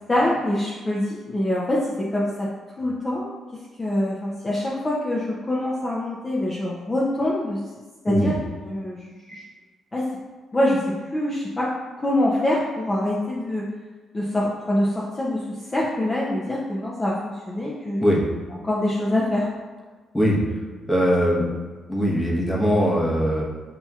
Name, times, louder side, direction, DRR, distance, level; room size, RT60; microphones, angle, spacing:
voice 1, 0.1-2.5 2.8-3.3 3.8-7.6 8.0-8.4 8.6-9.4 9.9-10.1 10.5-10.8 11.1-11.7 12.0-13.7 14.1-18.0 18.6-19.5, left 1 dB, 25° left, -5 dB, 0.6 m, -24 dB
voice 2, 20.9-21.4 21.9-23.4, equal, 10° left, -4 dB, 0.9 m, -20 dB
5.5 x 2.8 x 2.4 m, 1.3 s
cardioid pair, 90°, 0 cm